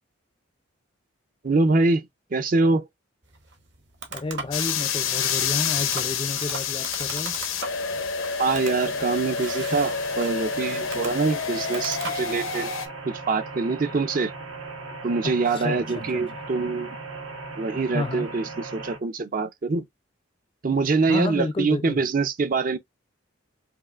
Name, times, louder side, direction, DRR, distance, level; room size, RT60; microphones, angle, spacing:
voice 1, 1.4-2.1 2.3-2.8 8.4-12.7 13.0-14.3 15.0-17.0 17.6-19.8 20.6-22.8, right 3 dB, 40° right, 0.5 m, -24 dB
sound 1, 3.2-12.7, right 4 dB, 60° right, 1.0 m, -40 dB
voice 2, 4.1-7.4 15.2-16.4 17.9-18.3 21.1-22.0, left 2 dB, 25° left, 0.4 m, -31 dB
sound 2, 4.5-12.9, left 6 dB, 85° left, 0.8 m, -28 dB
sound 3, 9.7-19.0, right 3 dB, 85° right, 1.3 m, -38 dB
5.4 x 2.4 x 2.4 m
head